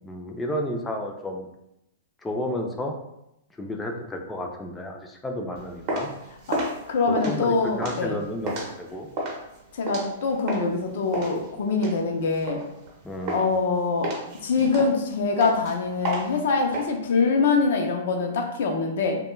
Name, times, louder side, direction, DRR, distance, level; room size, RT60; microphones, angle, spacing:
voice 1, 0.0-1.5 2.2-2.9 3.6-6.1 7.1-9.1 13.0-13.5, left 1 dB, 10° left, 2 dB, 0.4 m, -32 dB
sound 1, 5.6-10.8 11.1-13.0 13.3-13.7 14.0-16.8, right 1 dB, 40° right, 0.7 m, -32 dB
voice 2, 6.9-8.2 9.7-12.6 13.3-14.1 14.4-19.2, left 4 dB, 65° left, 3 dB, 0.5 m, -24 dB
2.2 x 2.2 x 3.0 m, 0.85 s
hypercardioid pair, 135°, 0 cm